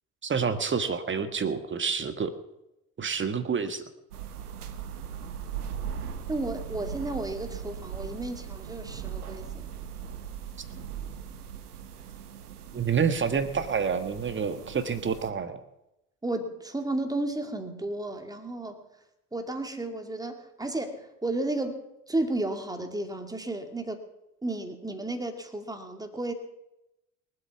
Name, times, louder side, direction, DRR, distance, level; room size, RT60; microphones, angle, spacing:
voice 1, 0.2-2.3 3.0-3.8 12.7-15.6, right 6 dB, 25° right, 11 dB, 1.5 m, -28 dB
sound 1, 4.1-15.3, right 8 dB, 75° right, 1.1 m, -39 dB
voice 2, 6.3-9.7 16.2-18.9 19.3-24.0 24.4-26.3, right 2 dB, 10° right, 6 dB, 2.3 m, -33 dB
23.0 x 8.0 x 6.0 m, 0.89 s
figure-of-eight pair, 60°, 46 cm